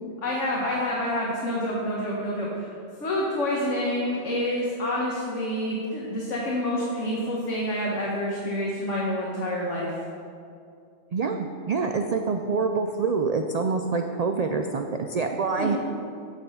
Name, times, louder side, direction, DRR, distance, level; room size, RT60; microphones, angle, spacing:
voice 1, 0.2-2.7 3.0-9.9 15.6-15.8, left 1 dB, 70° left, -4 dB, 1.6 m, -28 dB
voice 2, 11.1-15.8, right 4 dB, 80° right, 5 dB, 0.3 m, -26 dB
8.8 x 6.9 x 5.6 m, 2.4 s
omnidirectional pair, 1.3 m